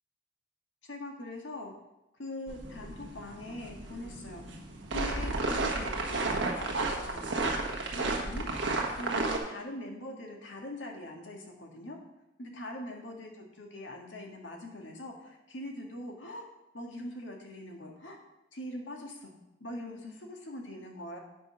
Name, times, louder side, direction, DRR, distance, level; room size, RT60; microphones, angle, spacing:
voice 1, 0.8-1.7 2.2-4.5 4.9-7.3 7.9-8.5 8.9-12.0 12.4-16.5 16.7-18.2 18.5-19.3 19.6-21.2, left 1 dB, 90° left, 1 dB, 1.8 m, -42 dB
sound 1, 2.5-9.4, right 2 dB, 80° right, 1.4 m, -33 dB
9.1 x 5.4 x 6.0 m, 0.93 s
head